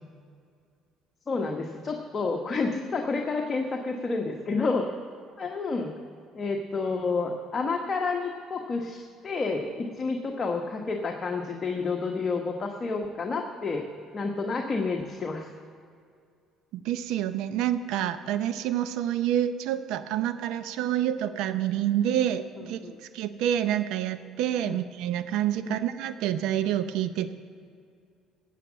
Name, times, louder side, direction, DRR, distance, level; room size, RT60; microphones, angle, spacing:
voice 1, 1.3-4.9 5.4-5.9 6.3-13.8 14.1-15.5 22.6-23.0 25.6-25.8, left 4 dB, 35° left, 2 dB, 1.2 m, -30 dB
voice 2, 16.7-22.8 23.1-27.3, right 11 dB, 75° right, 12 dB, 0.7 m, -28 dB
13.0 x 8.5 x 7.4 m, 2.3 s
supercardioid pair, 70°, 0 cm